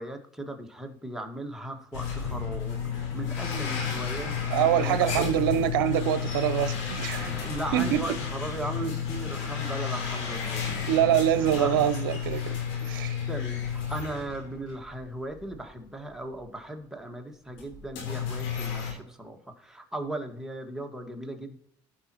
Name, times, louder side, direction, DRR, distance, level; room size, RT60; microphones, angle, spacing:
voice 1, 0.0-5.3 7.2-11.2 11.5-11.7 13.3-21.6, right 1 dB, 5° right, 1.7 m, -37 dB
sound 1, 1.9-15.0 15.4-15.5 16.3-16.4 17.5-18.9, left 7 dB, 80° left, 3.6 m, -32 dB
voice 2, 4.5-7.3 7.7-8.0 10.9-13.2, right 12 dB, 90° right, 0.6 m, -25 dB
15.5 x 5.8 x 3.0 m
supercardioid pair, 85°, 11 cm